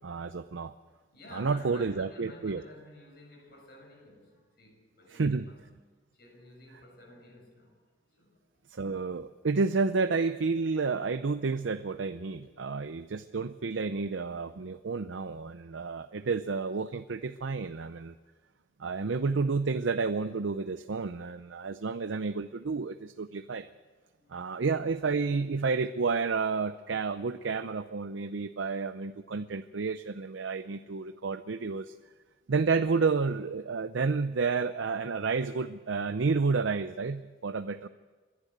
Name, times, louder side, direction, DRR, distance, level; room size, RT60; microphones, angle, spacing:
voice 1, 0.0-0.7 1.3-2.6 5.1-5.5 8.7-18.1 18.8-23.7 24.3-31.9 32.5-37.9, right 4 dB, 90° right, 11 dB, 0.6 m, -30 dB
voice 2, 0.9-5.8 6.1-7.8 8.1-8.4 24.0-24.3, left 1 dB, 55° left, 1 dB, 6.6 m, -52 dB
29.5 x 11.5 x 8.0 m, 1.4 s
head